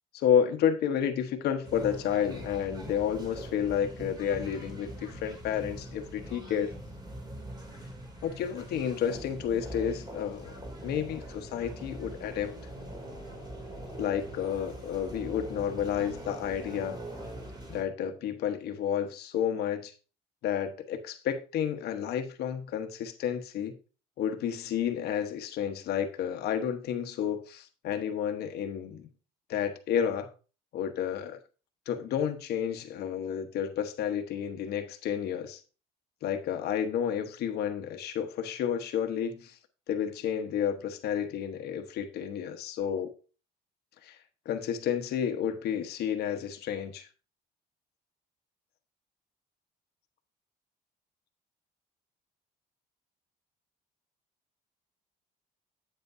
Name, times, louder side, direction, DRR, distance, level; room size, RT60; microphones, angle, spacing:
voice 1, 0.1-6.7 8.2-12.5 14.0-17.0 17.7-19.9 20.4-23.7 24.2-29.1 29.5-30.3 30.7-31.4 31.9-35.6 36.2-39.6 39.9-43.1 44.0-44.2 44.4-47.1, left 8 dB, 75° left, 1.1 m, -31 dB
sound 1, 1.6-17.8, right 1 dB, 25° right, 2.9 m, -42 dB
8.6 x 8.1 x 2.6 m
cardioid pair, 110°, 17 cm